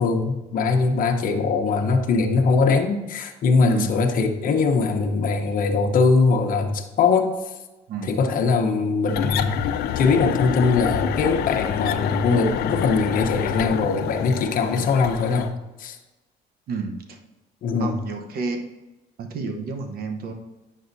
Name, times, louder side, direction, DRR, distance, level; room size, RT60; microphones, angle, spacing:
voice 1, 0.0-7.4 8.0-9.6 9.9-16.0 17.6-18.0, left 4 dB, 55° left, 4 dB, 0.9 m, -21 dB
sound 1, 9.1-15.5, left 9 dB, 70° left, 0.5 m, -27 dB
voice 2, 16.7-17.2 17.8-18.6 19.2-20.3, right 4 dB, 65° right, 4 dB, 1.0 m, -30 dB
8.9 x 6.4 x 2.7 m, 1.1 s
cardioid pair, 110°, 17 cm